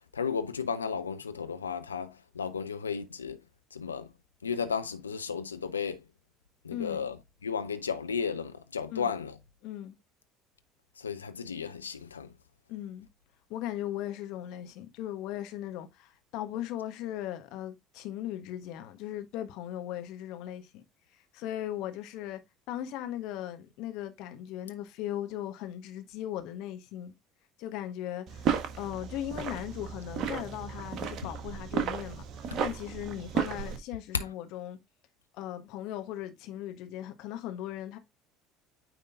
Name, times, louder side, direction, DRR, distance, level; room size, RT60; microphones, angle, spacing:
voice 1, 0.1-3.4 3.7-4.1 4.4-6.0 6.6-7.2 7.4-9.4 11.0-12.3 32.5-32.6 34.1-34.2, left 6 dB, 90° left, 0.5 m, -34 dB
voice 2, 6.7-7.1 8.9-9.1 9.6-10.0 12.7-13.1 13.5-20.8 21.3-22.4 22.7-27.1 27.6-32.2 32.6-34.8 35.3-38.0, left 12 dB, 65° left, 1.3 m, -38 dB
sound 1, 28.3-33.8, right 7 dB, 50° right, 1.5 m, -34 dB
9.2 x 3.7 x 3.6 m
hypercardioid pair, 65°, 0 cm